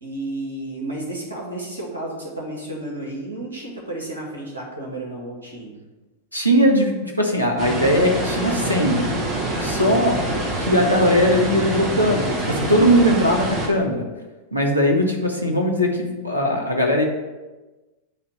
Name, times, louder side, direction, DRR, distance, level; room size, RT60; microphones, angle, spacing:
voice 1, 0.0-5.8, right 1 dB, 75° right, -3 dB, 1.8 m, -32 dB
voice 2, 6.3-9.2 9.6-10.2 10.6-14.1 14.5-17.0, equal, 90° left, 0 dB, 0.9 m, -19 dB
sound 1, 7.6-13.7, right 1 dB, 30° right, 1.3 m, -25 dB
8.3 x 2.9 x 5.6 m, 1.2 s
figure-of-eight pair, 90°, 0 cm